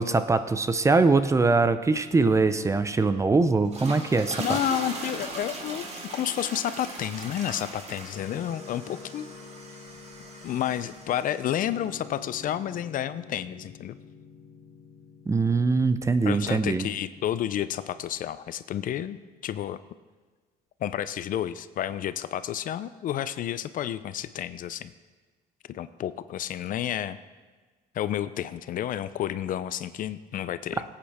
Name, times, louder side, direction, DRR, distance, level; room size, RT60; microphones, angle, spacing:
voice 1, 0.0-4.6 15.3-16.9, right 3 dB, 15° right, 11 dB, 0.5 m, -22 dB
sound 1, 3.5-11.9, right 2 dB, 40° right, 1.9 m, -39 dB
voice 2, 4.4-5.9 6.1-9.3 10.4-14.0 16.3-19.2 19.4-19.8 20.8-24.9 25.7-27.2 27.9-30.8, left 11 dB, 55° left, 14 dB, 0.5 m, -30 dB
Piano, 4.7-18.1, left 6 dB, 75° left, 1.8 m, -49 dB
18.0 x 8.7 x 3.5 m, 1.4 s
cardioid pair, 110°, 17 cm